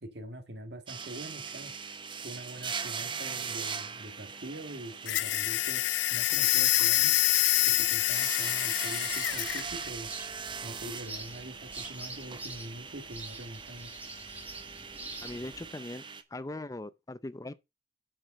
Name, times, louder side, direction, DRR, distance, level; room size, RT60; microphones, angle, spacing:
voice 1, 0.0-1.7 2.2-7.2 7.7-10.1 10.6-13.9, right 1 dB, 65° right, 1.7 m, -44 dB
sound 1, 0.9-16.2, right 6 dB, 25° right, 0.8 m, -41 dB
sound 2, 5.1-9.7, left 17 dB, 85° left, 0.3 m, -26 dB
sound 3, 9.1-15.7, right 2 dB, 10° right, 1.6 m, -46 dB
voice 2, 15.2-16.0 16.3-17.5, left 2 dB, 20° left, 0.5 m, -40 dB
7.4 x 5.0 x 5.3 m
head